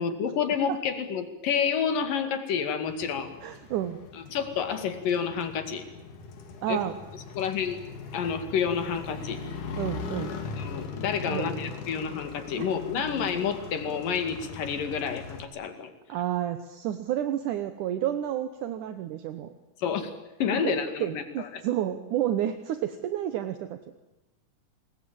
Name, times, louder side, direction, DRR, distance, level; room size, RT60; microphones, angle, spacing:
voice 1, 0.0-3.3 4.3-5.8 6.7-6.8 7.4-7.8 8.1-9.4 10.6-15.9 19.8-20.1 20.4-21.5, left 7 dB, 90° left, 8 dB, 3.9 m, -29 dB
Motorcycle, 2.9-15.4, left 5 dB, 70° left, 3.8 m, -40 dB
voice 2, 3.4-4.0 6.6-7.0 9.8-10.3 11.3-11.5 12.6-12.7 16.1-19.5 20.6-20.7 21.0-23.8, right 11 dB, 75° right, 9 dB, 2.5 m, -30 dB
28.5 x 20.5 x 8.8 m, 0.98 s
omnidirectional pair, 3.8 m